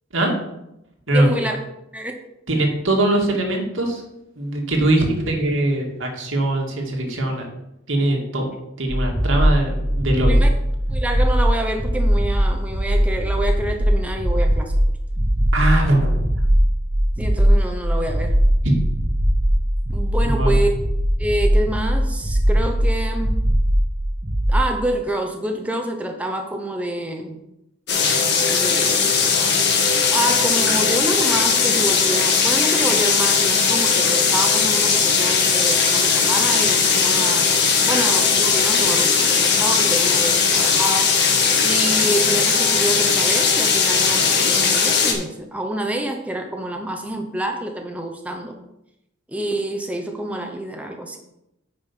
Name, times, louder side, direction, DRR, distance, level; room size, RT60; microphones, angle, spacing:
voice 1, 1.1-1.6 1.9-2.1 10.3-10.5 10.9-14.7 17.2-18.3 19.9-20.7 21.2-23.4 24.5-27.4 28.5-29.6 30.1-37.5 37.9-41.2 41.6-48.6 49.3-51.2, right 1 dB, 5° right, 3 dB, 0.8 m, -27 dB
voice 2, 2.5-4.0 4.4-7.5 7.9-8.5 8.8-10.4 15.5-16.2 18.6-18.8 20.2-20.5, right 1 dB, 85° right, 1 dB, 2.1 m, -21 dB
sound 1, 8.9-24.7, equal, 45° right, 1.1 m, -20 dB
sound 2, 27.9-45.1, left 5 dB, 60° left, 1.6 m, -18 dB
8.8 x 5.6 x 5.4 m, 0.86 s
head